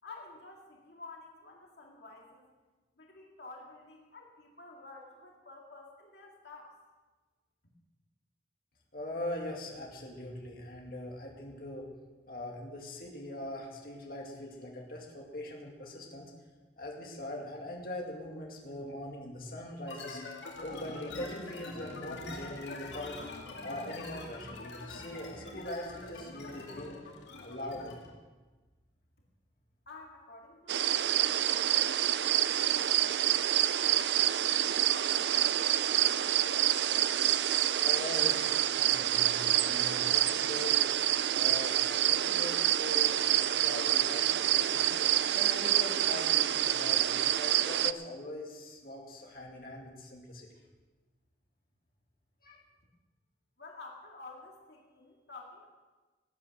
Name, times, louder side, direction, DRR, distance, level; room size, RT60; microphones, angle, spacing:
voice 1, 0.0-2.4 3.0-6.7 29.9-35.5 53.6-55.7, left 3 dB, 70° left, -1 dB, 2.2 m, -51 dB
voice 2, 8.9-11.9 12.3-16.3 16.8-20.2 20.6-23.2 23.6-27.0 27.4-28.0 37.8-40.7 41.3-45.0 45.3-50.5 52.4-52.6, left 1 dB, 55° left, -1 dB, 2.3 m, -42 dB
tabla variable harms, 19.9-28.2, left 2 dB, 85° left, 2.2 m, -44 dB
sound 1, 30.7-47.9, right 12 dB, 75° right, 0.5 m, -27 dB
18.5 x 8.8 x 6.5 m, 1.3 s
head